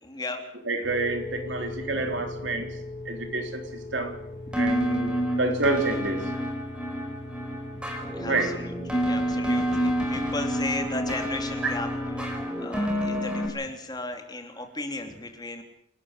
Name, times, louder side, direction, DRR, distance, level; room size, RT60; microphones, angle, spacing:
voice 1, 0.0-0.4 8.2-15.6, left 2 dB, 20° left, 5 dB, 3.3 m, -36 dB
voice 2, 0.7-2.7 3.1-3.6 3.9-4.2 4.5-6.3 8.3-8.5, right 2 dB, 75° right, 5 dB, 3.9 m, -28 dB
sound 1, 0.8-12.5, left 1 dB, 60° left, 5.9 m, -39 dB
Metro Tunnel, 4.5-13.5, equal, 5° right, 5.1 m, -29 dB
28.0 x 13.5 x 8.3 m, 0.75 s
head